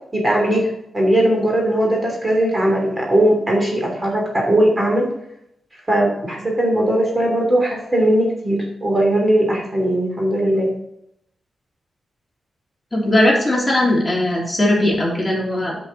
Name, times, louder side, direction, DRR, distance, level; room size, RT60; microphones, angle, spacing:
voice 1, 0.1-5.1 5.9-10.7, right 1 dB, 25° right, -1 dB, 2.9 m, -19 dB
voice 2, 12.9-15.8, left 1 dB, 15° left, -4 dB, 3.1 m, -18 dB
10.0 x 5.3 x 5.5 m, 0.78 s
wide cardioid pair, 105°, 0 cm